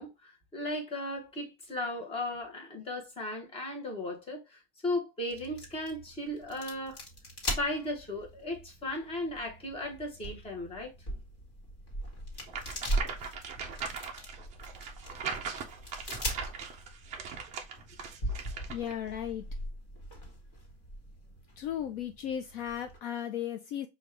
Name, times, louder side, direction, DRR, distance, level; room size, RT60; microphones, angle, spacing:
voice 1, 0.0-7.0 7.5-10.9, left 1 dB, 15° left, 0.9 m, -36 dB
sound 1, 5.3-23.0, equal, 35° left, 1.5 m, -40 dB
sound 2, 12.5-18.9, right 6 dB, 20° right, 0.3 m, -40 dB
voice 2, 18.7-19.4 21.6-23.9, left 10 dB, 55° left, 0.5 m, -35 dB
5.2 x 2.3 x 3.2 m
cardioid pair, 170°, 39 cm